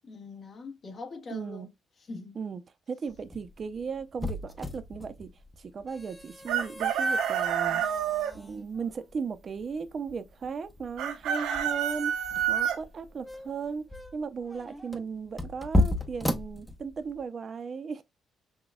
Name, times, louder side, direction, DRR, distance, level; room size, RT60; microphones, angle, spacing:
voice 1, 0.1-1.7 2.1-2.4, left 4 dB, 45° left, 1.2 m, -42 dB
voice 2, 1.3-1.7 2.3-2.6 2.9-5.3 5.6-7.8 8.3-13.8 14.1-18.0, right 5 dB, 45° right, 0.5 m, -36 dB
sound 1, 3.1-17.2, left 1 dB, 10° left, 0.6 m, -35 dB
Chicken rooster, 6.5-8.3 11.0-12.8, right 8 dB, 85° right, 0.7 m, -28 dB
5.9 x 2.2 x 2.3 m
cardioid pair, 90°, 0 cm